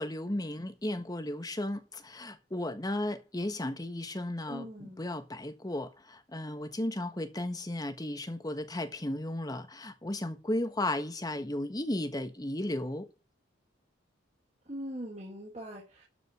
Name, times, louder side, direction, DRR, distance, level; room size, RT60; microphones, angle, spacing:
voice 1, 0.0-4.7 5.0-13.1, left 1 dB, 20° left, 1.3 m, -34 dB
voice 2, 4.5-5.0 14.6-16.0, equal, 35° right, 3.3 m, -41 dB
12.5 x 5.3 x 6.4 m
head